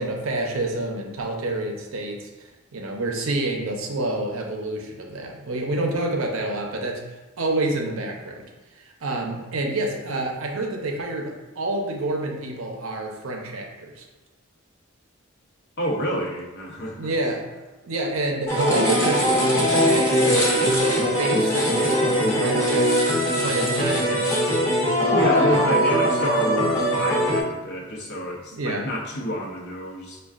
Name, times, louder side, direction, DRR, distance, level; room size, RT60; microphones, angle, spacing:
voice 1, 0.0-2.3 2.7-8.4 8.8-14.1 16.9-17.5 17.8-22.9 23.4-24.9 25.4-25.6 28.5-28.8, right 2 dB, 70° right, 1 dB, 0.6 m, -28 dB
voice 2, 15.8-17.1 25.1-30.2, equal, 50° left, -2 dB, 0.7 m, -28 dB
sound 1, 18.5-27.4, equal, 15° left, 0.8 m, -21 dB
5.3 x 2.2 x 2.4 m, 1.1 s
head